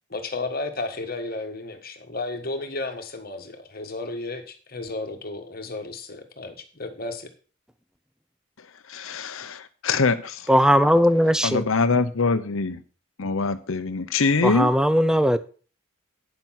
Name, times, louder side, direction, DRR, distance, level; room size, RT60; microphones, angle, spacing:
voice 1, 0.1-7.3, left 2 dB, 45° left, 1.6 m, -33 dB
voice 2, 8.9-10.5 11.4-12.8 13.2-14.7, left 4 dB, 75° left, 0.8 m, -24 dB
voice 3, 10.5-11.6 14.4-15.4, equal, 5° right, 0.5 m, -18 dB
9.6 x 7.1 x 5.8 m
head